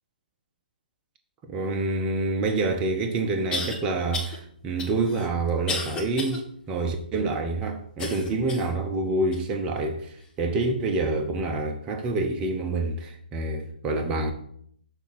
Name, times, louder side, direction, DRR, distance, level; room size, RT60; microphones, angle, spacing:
voice 1, 1.5-14.3, right 2 dB, 20° right, 0.6 m, -27 dB
sound 1, 2.5-2.6 3.5-3.8 4.1-4.4 4.8-6.4 6.9-7.0 8.0-8.7 9.3-9.4 10.2-10.3, left 3 dB, 15° left, 1.1 m, -33 dB
6.9 x 3.5 x 6.0 m
hypercardioid pair, 140°, 5 cm